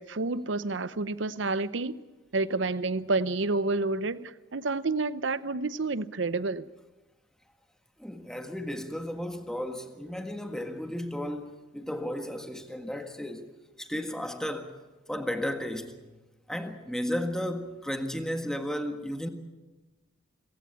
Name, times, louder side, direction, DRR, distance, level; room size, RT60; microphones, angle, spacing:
voice 1, 0.0-1.9 2.3-6.7, right 3 dB, 70° right, 0.8 m, -29 dB
voice 2, 8.0-14.8 15.1-16.0 16.5-19.3, equal, 5° left, 1.6 m, -34 dB
25.5 x 16.0 x 8.4 m
head